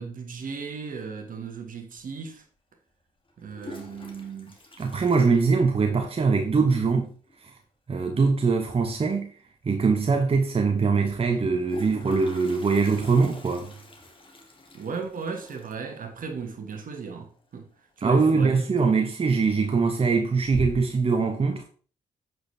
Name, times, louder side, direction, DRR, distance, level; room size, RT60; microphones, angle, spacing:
voice 1, 0.0-2.4 3.4-4.6 14.7-18.7, right 5 dB, 55° right, 1.7 m, -36 dB
Toilet flush, 2.0-2.1 3.3-6.1 6.4-6.5 6.7-6.8 7.1-7.5 9.2-9.3 9.7-9.8 11.3-18.0 18.3-18.7 19.2-19.7 20.1-21.1, equal, 30° left, 2.4 m, -43 dB
voice 2, 4.8-7.1 7.4-7.5 7.9-9.3 9.6-13.7 18.0-21.6, right 4 dB, 35° right, 1.1 m, -22 dB
7.9 x 6.3 x 3.4 m
hypercardioid pair, 45°, 17 cm